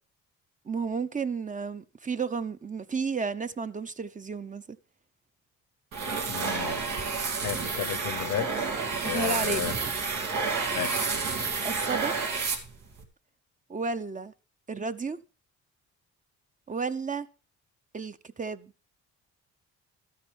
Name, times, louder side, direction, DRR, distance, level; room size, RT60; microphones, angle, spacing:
voice 1, 0.6-4.8 9.0-9.9 11.6-12.2 13.7-14.3 14.7-15.2 16.7-17.3 17.9-18.7, right 4 dB, 25° right, 0.7 m, -32 dB
sound 1, 5.9-13.0, right 4 dB, 85° right, 2.4 m, -30 dB
voice 2, 6.3-6.8 7.4-8.7 9.0-9.7 10.7-11.1, left 11 dB, 80° left, 0.9 m, -33 dB
13.0 x 9.7 x 3.4 m
cardioid pair, 90°, 30 cm